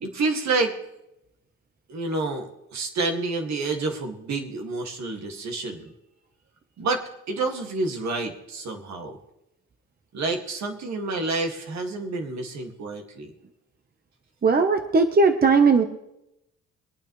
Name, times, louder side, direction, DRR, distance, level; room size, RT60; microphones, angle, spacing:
voice 1, 0.0-0.8 1.9-5.9 6.8-9.2 10.1-13.3, right 3 dB, 65° right, 3 dB, 2.2 m, -29 dB
voice 2, 14.4-15.8, right 4 dB, 30° right, 6 dB, 1.0 m, -18 dB
24.0 x 9.1 x 3.2 m, 0.89 s
cardioid pair, 90°, 30 cm